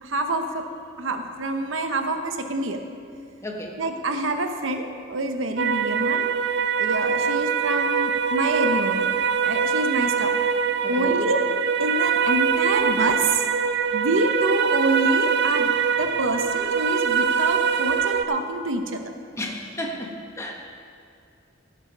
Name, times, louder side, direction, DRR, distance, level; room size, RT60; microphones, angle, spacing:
voice 1, 0.0-0.6 1.0-2.8 3.8-6.3 6.8-9.1 9.4-10.3 10.9-11.4 11.8-13.4 13.9-15.7 16.0-19.0, right 2 dB, 80° right, 6 dB, 1.0 m, -26 dB
voice 2, 3.4-3.8 10.8-11.1 19.4-20.1 20.4-20.5, left 1 dB, 15° left, 0 dB, 1.4 m, -32 dB
sound 1, 5.6-18.2, right 6 dB, 60° right, 0.5 m, -23 dB
15.5 x 7.9 x 5.5 m, 2.4 s
head